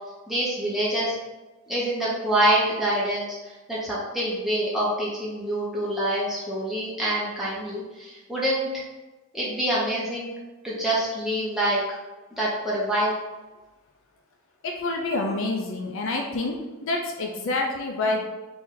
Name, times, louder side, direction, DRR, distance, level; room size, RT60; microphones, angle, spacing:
voice 1, 0.3-1.2 1.7-8.8 9.3-10.3 10.6-11.8 12.4-13.2, right 1 dB, ahead, -7 dB, 0.9 m, -26 dB
voice 2, 14.6-16.6 16.8-18.2, left 2 dB, 60° left, 1 dB, 0.5 m, -27 dB
3.3 x 2.6 x 3.9 m, 1.2 s
head